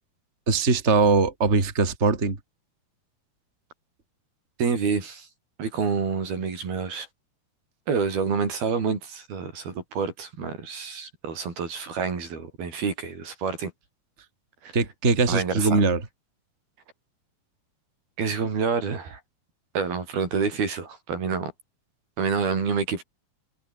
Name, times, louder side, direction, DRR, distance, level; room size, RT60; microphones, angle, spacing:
voice 1, 0.5-2.4 14.7-16.1, right 4 dB, 20° right, 3.2 m, -21 dB
voice 2, 4.6-5.3 5.6-7.1 7.9-13.7 14.6-14.7 15.3-15.7 18.2-19.2 19.8-21.5 22.2-23.0, right 5 dB, 75° right, 7.1 m, -28 dB
omnidirectional pair, 4.4 m